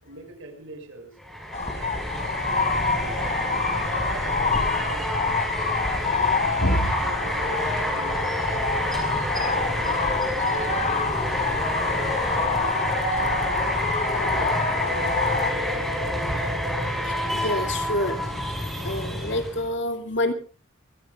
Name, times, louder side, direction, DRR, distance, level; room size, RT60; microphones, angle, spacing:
voice 1, 0.0-1.1 1.5-5.7 6.0-12.7 13.2-13.8 14.2-16.6, right 2 dB, 75° right, 6 dB, 5.7 m, -43 dB
sound 1, 1.2-19.7, equal, ahead, 5.8 m, -28 dB
sound 2, 1.5-15.5, left 5 dB, 30° left, 1.0 m, -27 dB
voice 2, 17.3-18.2 18.8-20.3, left 1 dB, 60° left, 5 dB, 2.5 m, -26 dB
24.0 x 21.5 x 2.4 m, 0.35 s
head